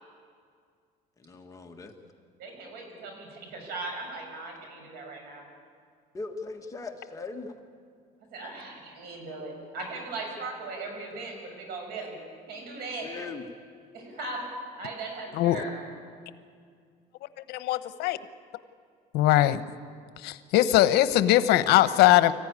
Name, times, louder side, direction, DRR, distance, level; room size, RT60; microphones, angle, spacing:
voice 1, 1.2-1.9 6.1-7.5 13.0-13.4, left 3 dB, 20° left, 3 dB, 1.7 m, -39 dB
voice 2, 2.4-5.4 8.3-12.1 12.5-13.1 13.9-14.5 14.7-15.9, right 3 dB, 75° right, 3 dB, 6.5 m, -38 dB
voice 3, 17.5-18.2 19.1-19.6 20.2-22.3, left 14 dB, 80° left, 13 dB, 1.0 m, -21 dB
24.5 x 15.5 x 9.7 m, 2.1 s
cardioid pair, 140°, 16 cm